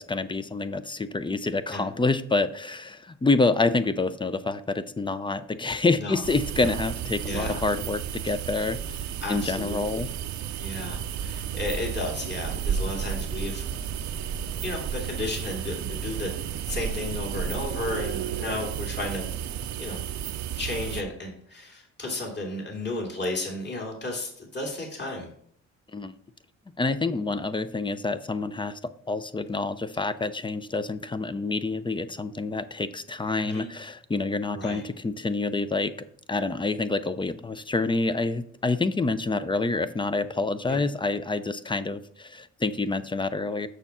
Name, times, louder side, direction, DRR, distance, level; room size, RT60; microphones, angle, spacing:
voice 1, 0.0-10.1 25.9-26.1 26.8-28.8 29.1-35.9 36.3-43.7, left 3 dB, 15° left, 13 dB, 0.5 m, -27 dB
sound 1, 6.2-21.0, right 8 dB, 70° right, 0.7 m, -32 dB
voice 2, 7.3-7.6 9.2-10.1 10.6-13.7 14.6-16.3 16.7-19.3 19.8-20.0 20.6-25.3 33.4-33.7 34.5-34.8 40.7-40.8, left 2 dB, 35° left, 0 dB, 2.7 m, -33 dB
6.8 x 6.1 x 5.6 m, 0.64 s
cardioid pair, 90°, 30 cm